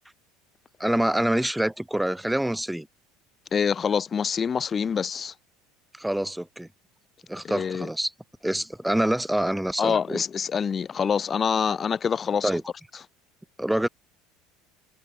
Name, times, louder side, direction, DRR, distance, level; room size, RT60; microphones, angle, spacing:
voice 1, 0.8-2.9 5.9-6.7 7.3-8.1 8.4-10.2 12.4-12.6 13.6-13.9, right 1 dB, 5° right, 0.9 m, -26 dB
voice 2, 3.5-5.3 7.4-7.9 9.8-12.5, left 6 dB, 30° left, 0.7 m, -26 dB
figure-of-eight pair, 70°, 0 cm